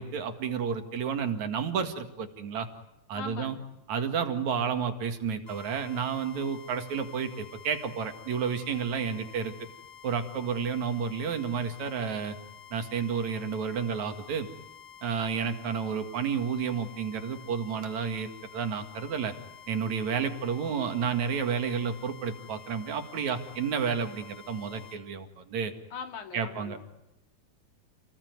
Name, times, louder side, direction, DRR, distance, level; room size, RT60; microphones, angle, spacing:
voice 1, 0.0-2.7 3.1-3.6 3.9-9.5 10.0-12.4 12.7-14.5 15.0-19.3 19.7-25.7 26.3-26.8, right 6 dB, 70° right, 7 dB, 3.3 m, -31 dB
voice 2, 3.1-3.7 25.9-26.8, left 5 dB, 80° left, 5 dB, 3.9 m, -40 dB
sound 1, 5.5-25.0, left 8 dB, 35° left, 6.4 m, -50 dB
29.0 x 20.0 x 9.5 m, 0.92 s
omnidirectional pair, 3.4 m